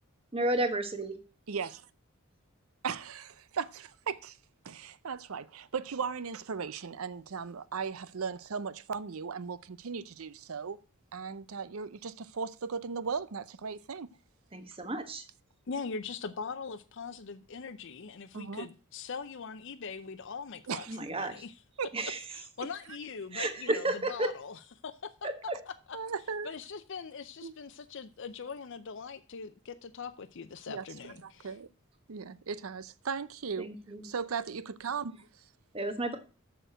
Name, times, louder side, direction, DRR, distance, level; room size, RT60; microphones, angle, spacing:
voice 1, 0.3-1.2 14.5-15.2 20.9-21.3 21.9-22.2 23.3-24.3 25.5-25.6 33.6-34.0 35.7-36.2, right 2 dB, 25° right, 1.2 m, -32 dB
voice 2, 1.5-1.9 2.8-4.4 4.6-10.8 11.1-14.1 18.3-18.7 20.7-21.0 21.8-21.9 25.9-26.5 27.4-27.5 30.7-30.8 31.2-31.7 32.1-33.7 34.0-35.3, right 5 dB, 75° right, 0.6 m, -37 dB
voice 3, 15.7-21.6 22.3-25.3 25.7-26.0 26.4-31.6, left 5 dB, 55° left, 0.6 m, -41 dB
6.6 x 6.6 x 7.7 m
head